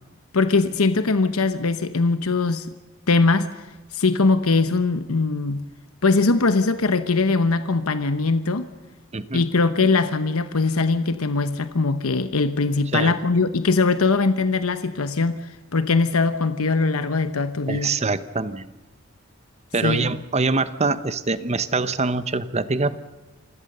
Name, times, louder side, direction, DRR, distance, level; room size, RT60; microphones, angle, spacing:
voice 1, 0.3-2.7 3.1-3.7 3.9-5.7 6.0-8.7 9.3-18.0 19.8-20.1, left 3 dB, 90° left, 11 dB, 1.0 m, -21 dB
voice 2, 9.1-9.4 12.9-13.1 17.7-18.7 19.7-23.0, right 3 dB, 30° right, 13 dB, 0.9 m, -24 dB
27.5 x 16.5 x 6.7 m, 1.2 s
head